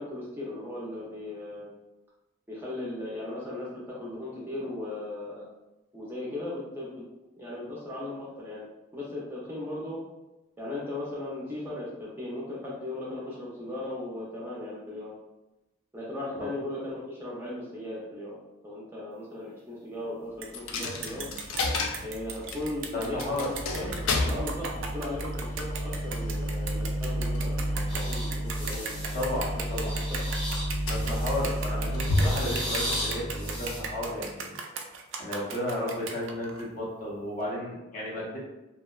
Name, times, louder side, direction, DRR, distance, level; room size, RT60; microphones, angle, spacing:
voice 1, 0.0-1.7 2.5-5.4 5.9-7.0 7.4-8.7 8.9-10.0 10.6-15.1 15.9-18.4 18.6-21.3 22.0-23.5 23.7-23.9 24.3-29.1 29.5-29.6 30.1-30.2, left 1 dB, 10° right, -6 dB, 0.4 m, -37 dB
sound 1, 20.4-20.5 20.8-36.7, right 5 dB, 75° right, 0.3 m, -38 dB
Coin (dropping), 20.5-34.3, left 1 dB, 90° left, 0.4 m, -31 dB
voice 2, 22.9-23.5 29.1-29.9 30.9-34.6 35.2-38.4, left 1 dB, 40° left, -5 dB, 0.7 m, -33 dB
sound 2, 27.9-29.3 29.7-31.6 31.9-33.8, equal, 5° left, 0.9 m, -36 dB
2.7 x 2.0 x 2.3 m, 1.0 s
head